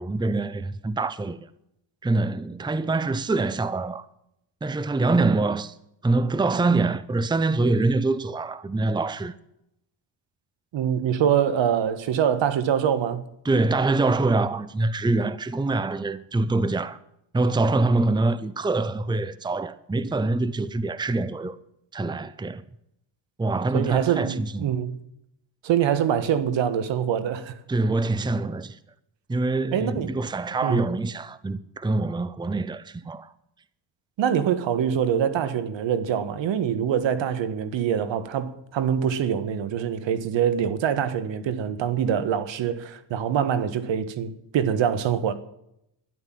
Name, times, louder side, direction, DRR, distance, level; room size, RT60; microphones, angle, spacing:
voice 1, 0.0-1.5 2.0-4.0 4.6-5.8 6.0-9.3 13.4-17.0 17.3-21.6 21.9-22.6 23.4-24.7 27.7-28.8 29.3-33.3, right 3 dB, 10° right, 0.7 m, -25 dB
voice 2, 10.7-13.3 23.7-25.0 25.6-27.6 29.7-30.2 30.6-30.8 34.2-45.3, right 8 dB, 75° right, 1.6 m, -24 dB
12.5 x 11.5 x 7.6 m
cardioid pair, 100°, 45 cm